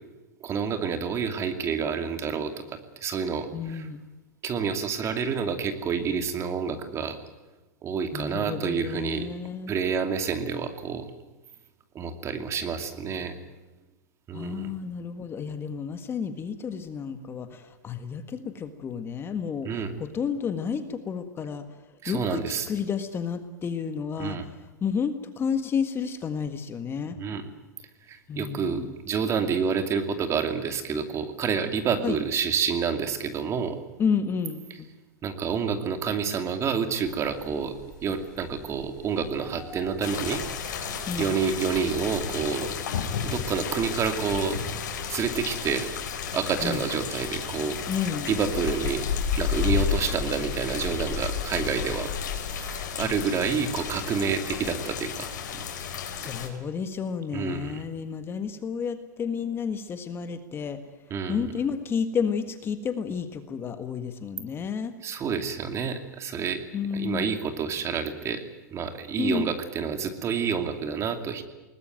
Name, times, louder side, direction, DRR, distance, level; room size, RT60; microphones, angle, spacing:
voice 1, 0.4-2.6 3.0-3.9 4.4-7.2 7.8-9.3 9.7-11.1 11.9-13.3 14.3-14.7 19.6-19.9 22.0-22.7 24.2-24.5 27.2-27.5 28.1-33.8 35.2-37.7 38.0-40.9 41.2-42.7 43.2-44.6 45.1-45.9 46.3-47.8 48.3-49.0 49.4-52.1 52.9-55.6 57.3-57.8 61.1-61.5 65.0-66.6 66.9-68.4 68.7-71.4, right 6 dB, 30° right, 7 dB, 2.6 m, -28 dB
voice 2, 3.5-4.0 8.1-9.7 14.3-21.7 22.1-24.4 24.8-27.2 28.3-28.9 32.0-32.2 34.0-34.9 41.1-41.4 46.6-46.9 47.9-48.3 53.0-53.2 56.2-60.8 61.3-64.9 66.7-67.4 69.2-69.5, left 6 dB, 25° left, 9 dB, 1.7 m, -31 dB
sound 1, 37.0-54.8, right 1 dB, 5° left, 7.5 m, -47 dB
sound 2, 40.0-56.5, left 7 dB, 70° left, 4.8 m, -32 dB
21.5 x 19.5 x 9.2 m, 1.1 s
hypercardioid pair, 120°, 10 cm